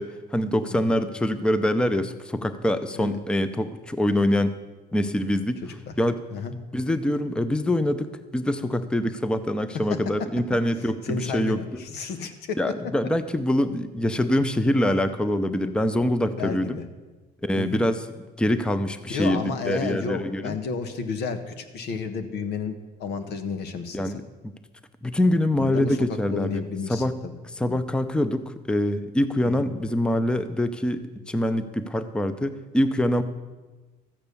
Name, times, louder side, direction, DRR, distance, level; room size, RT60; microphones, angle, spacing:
voice 1, 0.0-4.6 4.9-5.6 6.0-6.2 6.7-11.8 12.6-16.8 17.4-18.1 18.4-20.6 23.9-24.5 25.0-26.6 26.9-27.2 27.5-33.2, left 1 dB, 5° left, 11 dB, 0.6 m, -25 dB
voice 2, 5.6-5.9 6.3-6.5 9.7-10.0 11.0-12.6 16.4-16.8 17.5-17.8 19.1-24.1 25.6-27.3 27.7-27.8 29.4-29.7, left 5 dB, 75° left, 9 dB, 1.4 m, -32 dB
13.5 x 8.9 x 6.9 m, 1.2 s
cardioid pair, 110°, 17 cm